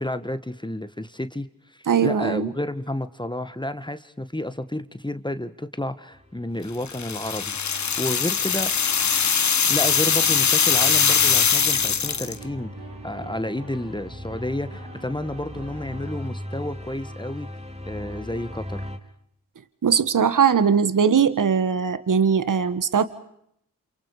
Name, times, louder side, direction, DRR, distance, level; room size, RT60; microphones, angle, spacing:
voice 1, 0.0-8.7 9.7-12.7 13.0-17.5 17.9-18.9, left 1 dB, 15° left, 11 dB, 1.8 m, -31 dB
voice 2, 1.9-2.5 19.8-23.1, right 7 dB, 60° right, 13 dB, 1.7 m, -20 dB
sound 1, 6.1-19.0, left 1 dB, 20° right, 4.6 m, -40 dB
sound 2, 6.9-12.4, left 6 dB, 55° left, 1.2 m, -21 dB
sound 3, 7.8-16.3, right 3 dB, 80° right, 5.1 m, -45 dB
29.0 x 27.5 x 5.0 m, 0.73 s
cardioid pair, 45°, 35 cm